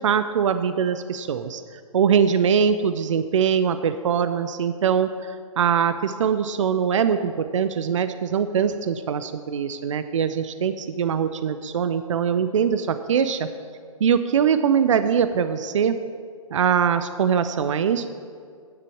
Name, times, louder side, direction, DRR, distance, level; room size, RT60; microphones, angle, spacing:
voice 1, 0.0-1.6 1.9-13.5 14.0-16.0 16.5-18.1, right 7 dB, 60° right, 11 dB, 0.6 m, -22 dB
10.0 x 6.7 x 7.1 m, 2.2 s
figure-of-eight pair, 130°, 18 cm